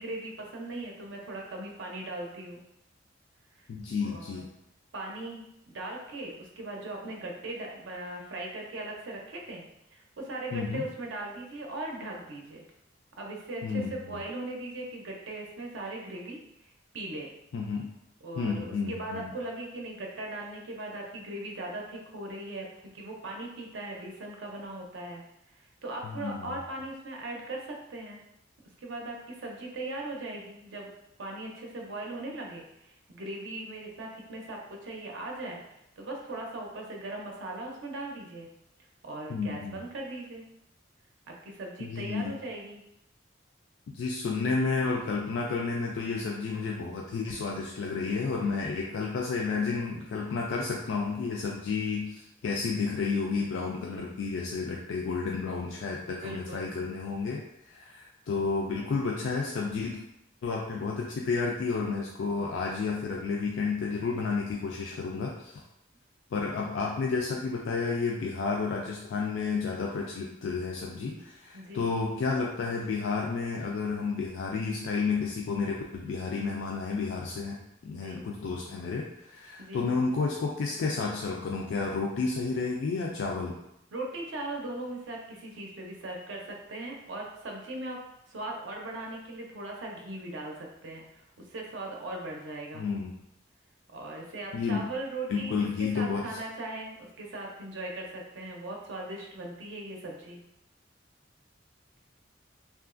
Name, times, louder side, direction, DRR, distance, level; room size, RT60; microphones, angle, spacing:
voice 1, 0.0-2.6 3.6-3.7 4.1-4.4 4.9-9.6 9.9-12.6 13.2-17.3 18.2-22.7 22.9-25.2 25.5-28.2 28.8-30.9 31.2-38.5 39.0-40.4 41.3-42.8 56.1-56.8 71.5-71.9 77.9-78.2 79.6-79.8 83.9-88.0 88.3-92.9 93.9-100.4, right 2 dB, 70° right, 0 dB, 0.5 m, -39 dB
voice 2, 3.7-4.5 10.5-10.8 13.6-14.2 17.5-17.9 18.4-19.3 26.0-26.5 39.3-39.8 41.8-42.4 43.9-60.0 60.4-65.6 66.3-83.6 92.7-93.1 94.5-94.8 95.3-96.4, left 4 dB, 75° left, -2 dB, 0.3 m, -31 dB
2.9 x 2.4 x 2.4 m, 0.83 s
head